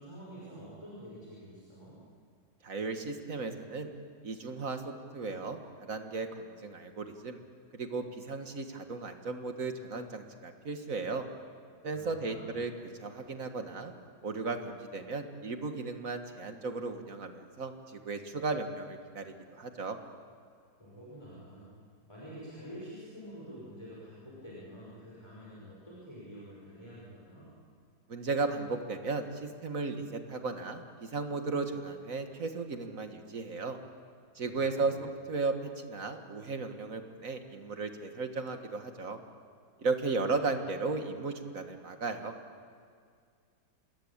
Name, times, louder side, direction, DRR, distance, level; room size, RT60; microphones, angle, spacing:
voice 1, 0.0-2.0 11.9-12.6 20.8-21.7 22.1-27.5 34.5-35.0, equal, 15° left, -6 dB, 5.6 m, -47 dB
voice 2, 2.6-3.9 4.2-7.4 7.7-11.3 11.8-12.7 13.0-13.9 14.2-20.0 28.1-33.8 34.4-34.9 35.3-39.2 39.8-42.4, right 3 dB, 50° right, 6 dB, 1.9 m, -35 dB
27.0 x 20.5 x 8.7 m, 2.1 s
omnidirectional pair, 1.9 m